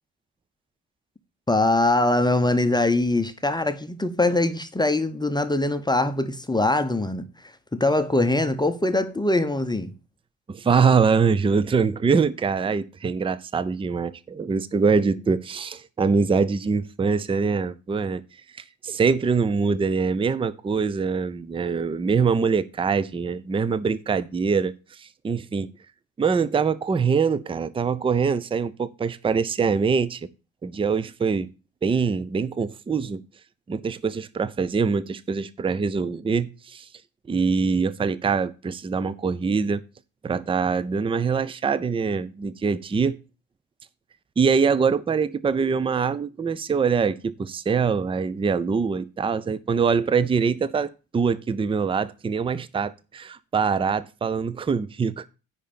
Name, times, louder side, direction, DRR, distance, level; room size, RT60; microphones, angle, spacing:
voice 1, 1.5-9.9, left 2 dB, 10° left, 0.8 m, -22 dB
voice 2, 10.5-18.2 18.8-24.7 25.0-25.7 26.2-30.2 30.6-31.5 31.8-33.2 33.7-36.9 37.3-39.8 40.2-43.2 44.4-55.3, right 5 dB, 10° right, 0.5 m, -23 dB
10.0 x 4.2 x 6.9 m
figure-of-eight pair, 45°, 49 cm